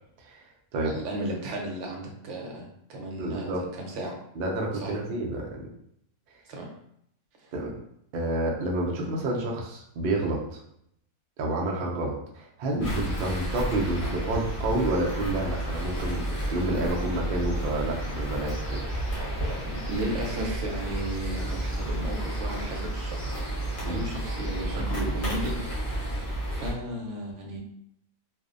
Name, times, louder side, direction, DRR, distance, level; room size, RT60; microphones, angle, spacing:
voice 1, 0.8-4.2 4.7-4.9 6.5-6.7 7.4-7.5 19.7-25.6 26.5-27.6, right 1 dB, 65° right, 0 dB, 0.8 m, -34 dB
voice 2, 3.2-3.7 4.4-5.6 7.5-7.7 8.1-10.6 11.4-19.0 23.8-24.0 24.7-24.8, right 2 dB, 85° right, -1 dB, 0.5 m, -29 dB
sound 1, 12.8-26.7, right 1 dB, 45° left, 0.8 m, -31 dB
2.5 x 2.0 x 2.4 m, 0.73 s
omnidirectional pair, 1.5 m